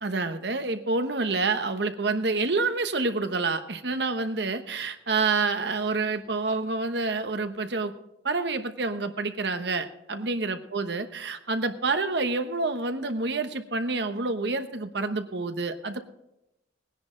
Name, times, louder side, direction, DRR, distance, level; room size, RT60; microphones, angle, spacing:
voice 1, 0.0-7.9 8.2-16.0, right 3 dB, 65° right, 8 dB, 1.1 m, -28 dB
19.0 x 10.5 x 3.8 m, 0.88 s
head